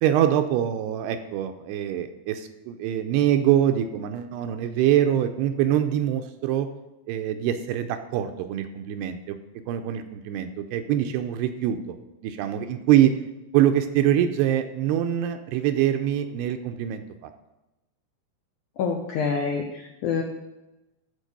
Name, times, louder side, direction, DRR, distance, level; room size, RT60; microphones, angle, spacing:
voice 1, 0.0-6.7 7.1-9.4 9.7-12.0 12.2-13.1 13.5-17.3, right 11 dB, 85° right, 7 dB, 2.7 m, -24 dB
voice 2, 18.8-20.2, left 5 dB, 80° left, 2 dB, 1.8 m, -27 dB
14.0 x 4.7 x 6.8 m, 0.99 s
omnidirectional pair, 4.8 m